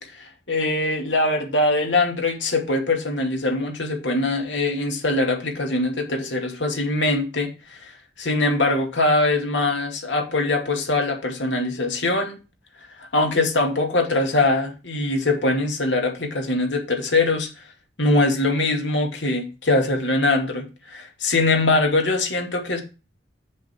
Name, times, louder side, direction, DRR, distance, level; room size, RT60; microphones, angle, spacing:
voice 1, 0.1-7.9 8.2-12.4 13.0-17.5 18.0-22.8, left 2 dB, 80° left, 3 dB, 2.4 m, -22 dB
7.7 x 7.7 x 4.4 m, 0.31 s
head